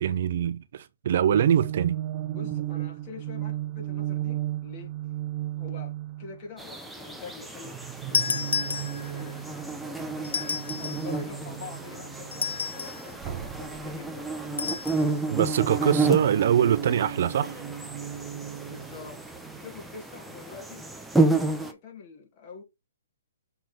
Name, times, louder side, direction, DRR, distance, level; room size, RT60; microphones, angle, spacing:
voice 1, 0.0-2.0 15.3-17.6, right 9 dB, 55° right, 0.7 m, -23 dB
sound 1, 1.3-6.5 7.6-12.7 13.1-15.2 15.5-19.6, right 12 dB, 30° right, 1.0 m, -36 dB
voice 2, 2.3-4.9 5.6-7.8 8.0-9.5 10.2-14.3 15.8-16.2 18.7-19.2 19.6-20.9 21.4-22.6, left 5 dB, 35° left, 2.8 m, -45 dB
sound 2, 6.6-21.7, right 3 dB, ahead, 1.0 m, -31 dB
sound 3, 8.1-9.3 10.2-11.1 12.3-13.1 14.6-15.0, left 5 dB, 85° left, 0.3 m, -30 dB
6.7 x 3.9 x 4.5 m
hypercardioid pair, 145°, 0 cm